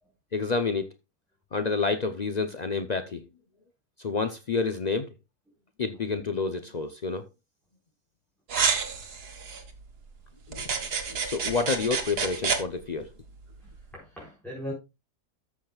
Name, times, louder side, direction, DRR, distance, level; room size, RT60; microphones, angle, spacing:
voice 1, 0.3-0.9 1.5-3.2 4.0-5.1 5.8-7.3 10.5-10.6 11.1-13.1, left 4 dB, 70° left, 0.4 m, -29 dB
sound 1, 8.5-9.6 10.5-12.6, right 5 dB, 70° right, 2.1 m, -29 dB
voice 2, 13.6-14.7, equal, ahead, 4.4 m, -40 dB
13.5 x 7.2 x 2.3 m
omnidirectional pair, 1.7 m